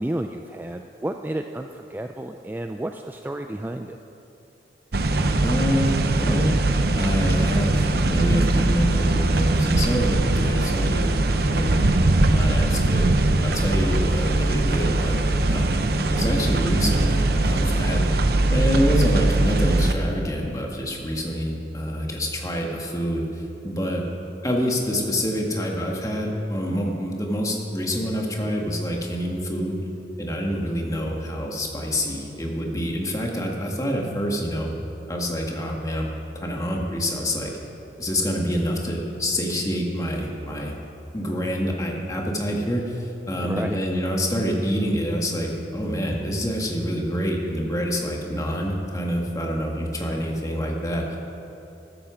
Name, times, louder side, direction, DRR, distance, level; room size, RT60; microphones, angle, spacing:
voice 1, 0.0-4.0 43.4-43.8, right 1 dB, 10° right, 5 dB, 0.3 m, -31 dB
sound 1, 4.9-19.9, right 2 dB, 60° right, 0.8 m, -21 dB
voice 2, 5.4-6.6 7.0-11.1 11.5-11.9 12.3-13.1 13.4-15.8 16.1-18.0 18.5-23.2 23.6-24.0 24.4-29.8 30.2-34.7 35.1-36.1 36.4-37.5 38.0-40.7 41.1-51.2, equal, 20° left, 0 dB, 1.7 m, -26 dB
14.0 x 13.0 x 5.0 m, 2.9 s
head